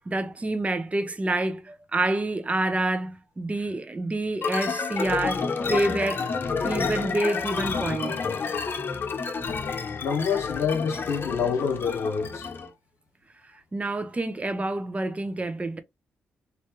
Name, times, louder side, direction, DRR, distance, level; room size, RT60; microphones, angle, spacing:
voice 1, 0.1-6.3 6.6-8.2 13.7-15.8, right 2 dB, 30° right, 0.8 m, -28 dB
sound 1, 4.4-12.7, left 5 dB, 50° left, 0.9 m, -29 dB
voice 2, 10.0-12.5, left 6 dB, 80° left, 0.9 m, -27 dB
3.2 x 2.6 x 3.1 m
hypercardioid pair, 45°, 5 cm